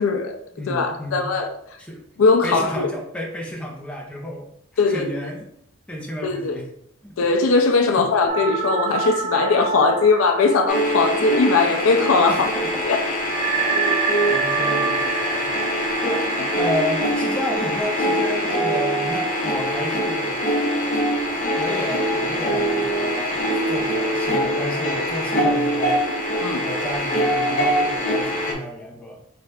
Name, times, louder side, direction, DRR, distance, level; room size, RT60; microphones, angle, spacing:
voice 1, 0.0-0.4 0.7-1.5 2.2-2.9 4.8-5.1 6.2-6.6 7.2-12.4 12.9-13.0 26.4-26.6, left 4 dB, 70° left, 0.4 m, -19 dB
voice 2, 0.5-1.4 1.8-2.0 2.4-4.5 4.9-5.5 5.9-6.7 7.0-7.1 7.9-8.1 12.3-13.0 13.5-15.5 16.0-16.2 16.5-20.4 21.5-26.1 26.6-29.2, left 1 dB, 5° left, 0.6 m, -31 dB
sound 1, 8.3-12.3 12.6-12.7 13.3-18.0, right 5 dB, 30° right, 0.3 m, -27 dB
Old Tape With Guitar And Warped Talking, 10.7-28.5, equal, 40° left, 0.8 m, -23 dB
4.1 x 2.4 x 3.4 m
head